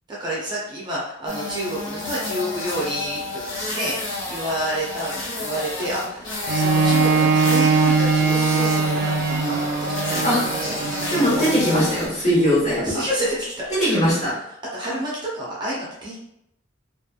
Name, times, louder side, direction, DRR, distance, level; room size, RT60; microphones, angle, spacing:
voice 1, 0.1-3.4 3.7-11.5 12.8-13.8 14.7-16.2, right 1 dB, 25° right, -6 dB, 0.6 m, -29 dB
sound 1, 1.3-12.1, left 2 dB, 85° left, 0.7 m, -30 dB
Bowed string instrument, 6.5-12.1 12.7-12.8, right 4 dB, 55° right, 0.3 m, -21 dB
voice 2, 11.1-12.8 13.8-14.3, equal, 35° left, -7 dB, 1.3 m, -20 dB
3.0 x 2.4 x 2.4 m, 0.79 s
head